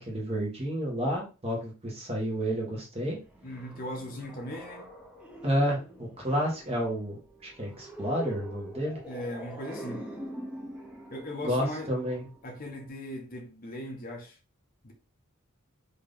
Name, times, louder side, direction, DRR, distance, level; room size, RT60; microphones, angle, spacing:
voice 1, 0.1-3.2 5.4-9.0 11.4-12.3, equal, 30° right, 1.3 m, -30 dB
sound 1, 3.2-12.9, right 1 dB, 5° right, 0.7 m, -44 dB
voice 2, 3.4-4.8 9.1-10.0 11.1-11.9 12.4-14.4 14.8-14.9, left 1 dB, 45° left, 0.9 m, -38 dB
4.0 x 2.8 x 3.4 m
head